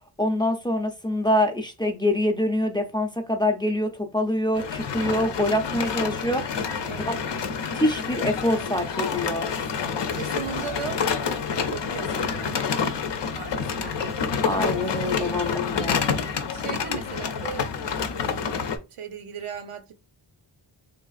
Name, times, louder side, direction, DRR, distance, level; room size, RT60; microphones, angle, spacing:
voice 1, 0.2-6.5 7.0-7.2 7.7-9.5 14.4-16.0, left 1 dB, 10° left, 0.5 m, -25 dB
sound 1, 4.6-18.8, left 6 dB, 60° left, 0.5 m, -28 dB
voice 2, 10.1-11.1 11.5-12.7 13.3-14.0 16.1-17.7 17.9-19.9, right 7 dB, 85° right, 0.7 m, -38 dB
3.3 x 2.4 x 2.3 m
wide cardioid pair, 80°, 49 cm